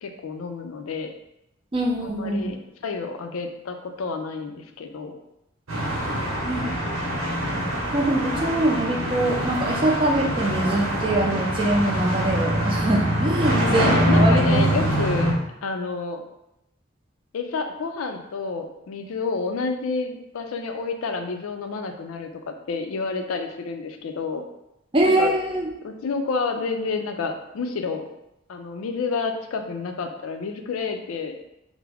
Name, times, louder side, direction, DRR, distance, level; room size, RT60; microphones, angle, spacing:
voice 1, 0.0-1.1 2.0-5.2 6.2-6.7 13.5-15.3 15.6-16.2 17.3-24.4 25.0-25.4 25.8-28.1 28.5-31.4, left 4 dB, 90° left, 5 dB, 0.4 m, -30 dB
voice 2, 1.7-2.5 6.5-6.7 7.5-14.9 24.9-25.7, right 1 dB, 25° right, 0 dB, 0.4 m, -24 dB
sound 1, 5.7-15.3, equal, 85° right, 0.9 m, -24 dB
3.4 x 2.0 x 3.4 m, 0.85 s
head